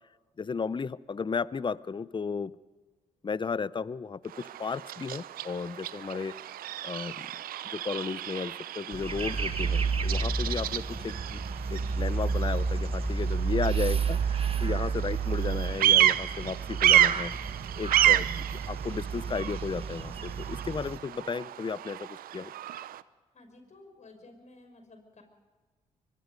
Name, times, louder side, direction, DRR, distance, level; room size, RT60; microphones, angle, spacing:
voice 1, 0.4-2.5 3.2-6.3 6.8-7.3 7.6-11.4 11.7-17.3 17.8-22.5, left 5 dB, 30° left, 19 dB, 0.7 m, -34 dB
Bird vocalization bird call bird song, 4.3-23.0, right 12 dB, 70° right, 0.7 m, -30 dB
sound 1, 8.9-21.0, right 5 dB, 40° right, 1.5 m, -31 dB
voice 2, 23.3-25.2, left 2 dB, 50° left, 5 dB, 5.9 m, -54 dB
23.5 x 22.0 x 5.3 m, 1.3 s
hypercardioid pair, 50°, 15 cm